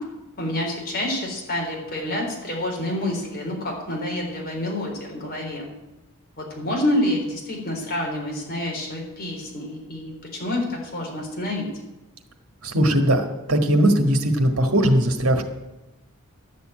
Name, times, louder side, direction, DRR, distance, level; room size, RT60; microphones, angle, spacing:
voice 1, 0.4-5.7 6.4-11.7, left 1 dB, 45° left, -1 dB, 4.0 m, -28 dB
voice 2, 12.6-15.4, right 1 dB, 70° right, 4 dB, 1.6 m, -19 dB
11.5 x 7.0 x 8.9 m, 1.0 s
head